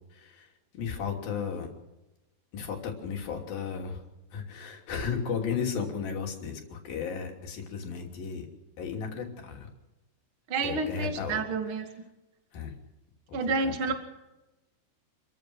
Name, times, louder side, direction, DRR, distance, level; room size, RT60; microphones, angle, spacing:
voice 1, 0.1-0.5 0.7-1.7 2.5-4.0 4.3-8.5 8.8-9.7 10.6-11.7 12.5-12.7 13.3-13.9, left 6 dB, 65° left, 2 dB, 4.7 m, -34 dB
voice 2, 10.5-11.9 13.3-13.9, right 3 dB, 40° right, 5 dB, 2.6 m, -29 dB
28.0 x 14.5 x 6.3 m, 1.0 s
omnidirectional pair, 4.6 m